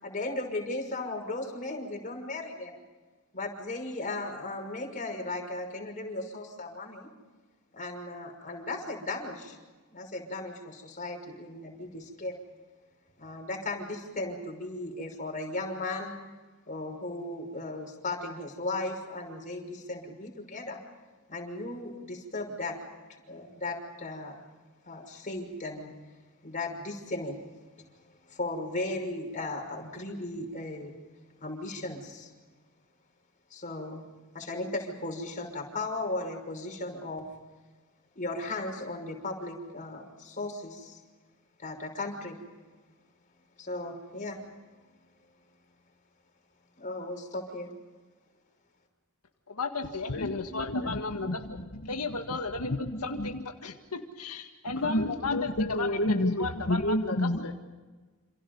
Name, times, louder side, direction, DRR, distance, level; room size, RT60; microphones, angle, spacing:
voice 1, 0.0-2.8 3.3-7.1 7.7-9.6 9.9-12.4 13.2-16.1 16.7-20.8 21.3-22.8 23.3-24.3 24.9-25.9 26.4-27.4 28.3-30.9 31.4-32.3 33.5-34.0 34.3-37.3 38.2-41.0 41.6-42.4 43.6-44.4 46.8-47.7, left 2 dB, 35° left, 2 dB, 6.0 m, -36 dB
voice 2, 49.5-51.4 51.9-55.5 55.8-57.5, left 3 dB, 90° left, 4 dB, 2.0 m, -35 dB
voice 3, 50.1-51.9 52.6-53.4 54.8-57.5, left 1 dB, 55° left, 5 dB, 1.4 m, -30 dB
28.5 x 28.5 x 5.4 m, 1.3 s
head